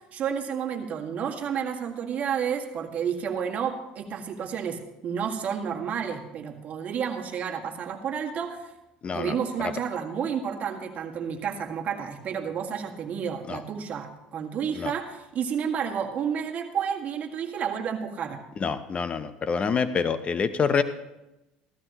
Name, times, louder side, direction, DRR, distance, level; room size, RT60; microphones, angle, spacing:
voice 1, 0.1-8.7 9.1-18.4, right 7 dB, 45° right, 2 dB, 1.8 m, -31 dB
voice 2, 9.0-9.4 13.5-13.6 14.7-14.9 18.6-20.8, left 5 dB, 35° left, 11 dB, 0.7 m, -26 dB
15.0 x 14.0 x 3.0 m, 0.95 s
supercardioid pair, 90°, 3 cm